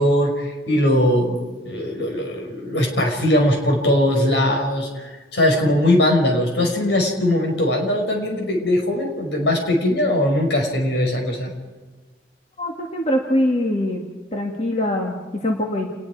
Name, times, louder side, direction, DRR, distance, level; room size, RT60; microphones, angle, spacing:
voice 1, 0.0-1.4 1.7-11.5, left 1 dB, 70° left, 1 dB, 5.6 m, -20 dB
voice 2, 12.6-14.0 14.3-15.9, left 1 dB, 35° left, 0 dB, 2.1 m, -23 dB
29.5 x 20.0 x 4.9 m, 1.3 s
head